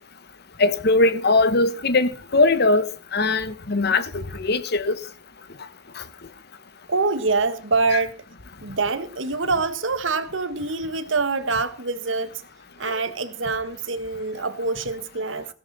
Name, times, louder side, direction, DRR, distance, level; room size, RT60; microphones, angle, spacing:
voice 1, 0.6-2.8 3.1-5.0, left 3 dB, 60° left, 1.2 m, -20 dB
voice 2, 6.9-8.2 8.6-12.4 12.8-15.5, right 3 dB, 85° right, 1.5 m, -25 dB
16.0 x 12.0 x 4.1 m
head